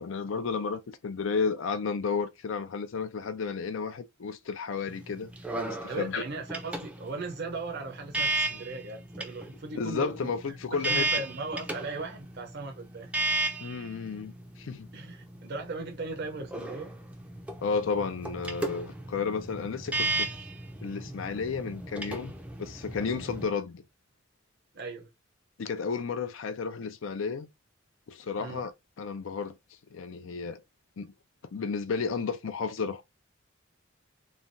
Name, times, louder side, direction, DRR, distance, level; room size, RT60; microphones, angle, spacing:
voice 1, 0.0-5.3 5.8-6.2 9.7-11.1 13.6-14.9 17.6-20.3 20.8-22.3 22.6-23.8 25.6-27.5 28.1-28.7 29.0-29.5 29.9-30.6 31.0-31.1 31.5-33.0, left 5 dB, 75° left, 0.5 m, -32 dB
sound 1, 4.9-23.4, right 2 dB, 5° right, 0.4 m, -35 dB
voice 2, 5.9-10.3 10.9-13.1 14.9-16.9 24.7-25.1 28.4-28.6, right 3 dB, 55° right, 0.6 m, -38 dB
3.1 x 2.3 x 2.5 m
head